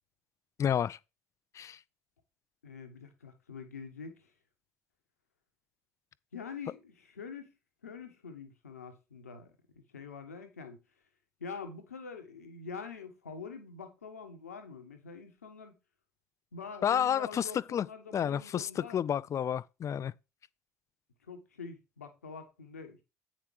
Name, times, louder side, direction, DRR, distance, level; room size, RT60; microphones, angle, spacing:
voice 1, 0.6-1.0 1.5-1.8 16.8-17.9 18.1-20.1, left 9 dB, 40° left, 0.5 m, -30 dB
voice 2, 2.6-4.3 6.3-7.5 7.8-10.8 11.4-15.7 16.5-19.0 21.3-23.0, left 5 dB, 85° left, 1.4 m, -45 dB
8.7 x 5.9 x 4.8 m
figure-of-eight pair, 55°, 8 cm